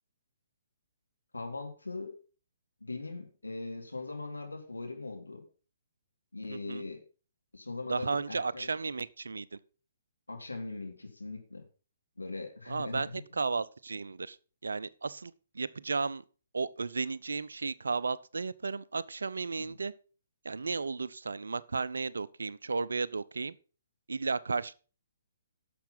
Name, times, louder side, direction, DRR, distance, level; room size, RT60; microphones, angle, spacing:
voice 1, 1.3-2.2 2.8-5.4 6.3-7.0 7.5-8.7 10.3-11.6 12.2-13.0 19.6-19.7, left 3 dB, 80° left, 3.3 m, -40 dB
voice 2, 6.5-6.8 7.9-9.6 12.7-14.4 14.6-16.2 16.5-19.9 20.4-23.6 24.1-24.7, right 4 dB, 70° right, 0.6 m, -34 dB
11.5 x 7.1 x 5.6 m
figure-of-eight pair, 130°, 0 cm